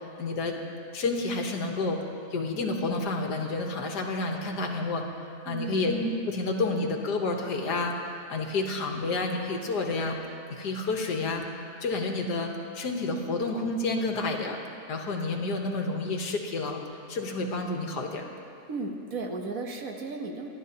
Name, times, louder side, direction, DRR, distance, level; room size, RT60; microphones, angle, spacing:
voice 1, 0.2-0.6 0.9-2.0 2.3-5.1 5.4-7.9 8.3-10.2 10.5-11.4 11.8-14.6 14.9-16.8 17.1-18.3, left 3 dB, 75° left, 2 dB, 1.8 m, -29 dB
voice 2, 5.5-5.9 18.7-20.5, right 3 dB, 60° right, 2 dB, 1.4 m, -34 dB
26.0 x 11.5 x 2.9 m, 2.5 s
omnidirectional pair, 1.8 m